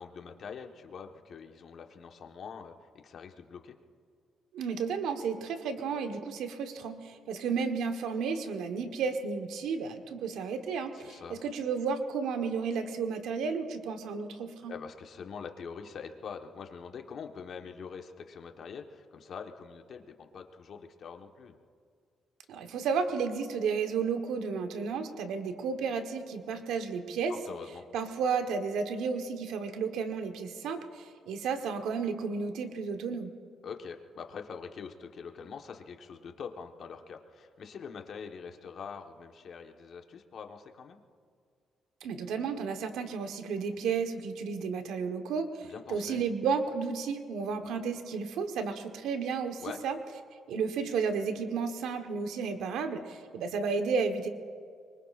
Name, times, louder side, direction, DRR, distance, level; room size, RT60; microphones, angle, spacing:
voice 1, 0.0-2.7 3.0-3.7 10.9-11.4 14.7-21.6 27.4-27.8 33.6-41.0 45.6-46.2 49.6-49.8, left 6 dB, 60° left, 4 dB, 1.3 m, -44 dB
voice 2, 4.5-14.7 22.5-27.4 27.9-33.3 42.0-50.0 50.5-54.3, right 5 dB, 85° right, 6 dB, 1.2 m, -32 dB
24.5 x 23.0 x 2.5 m, 2.1 s
cardioid pair, 90°, 0 cm